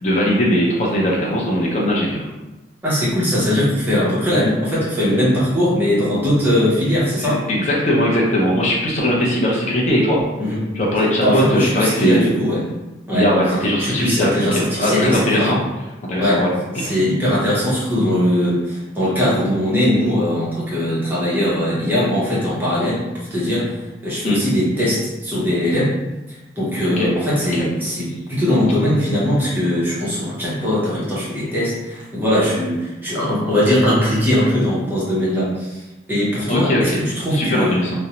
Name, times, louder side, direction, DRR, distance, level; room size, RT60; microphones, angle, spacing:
voice 1, 0.0-2.3 7.2-10.2 10.7-12.3 13.1-15.6 16.1-16.5 24.2-24.4 27.0-27.1 36.5-36.8 37.3-37.9, equal, 40° left, -4 dB, 0.4 m, -19 dB
voice 2, 2.8-7.4 10.4-10.6 11.2-12.6 13.1-13.3 13.8-15.6 16.2-16.5 16.7-25.9 26.3-37.9, left 1 dB, 10° right, -8 dB, 0.6 m, -20 dB
2.5 x 2.0 x 2.8 m, 1.1 s
head